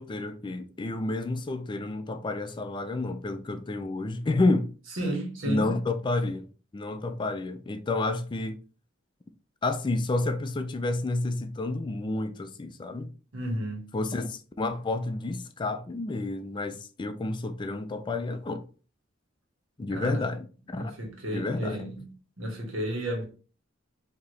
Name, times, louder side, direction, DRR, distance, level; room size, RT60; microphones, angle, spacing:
voice 1, 0.0-4.7 5.5-6.5 6.7-8.6 9.6-13.1 13.9-18.6 19.8-20.4 20.7-20.9 21.3-21.8, left 2 dB, 25° left, 0.4 m, -30 dB
voice 2, 4.9-5.7 13.3-13.9 19.9-20.3 20.7-22.0 22.4-23.2, right 1 dB, 75° right, 1.6 m, -32 dB
4.7 x 2.9 x 3.2 m
head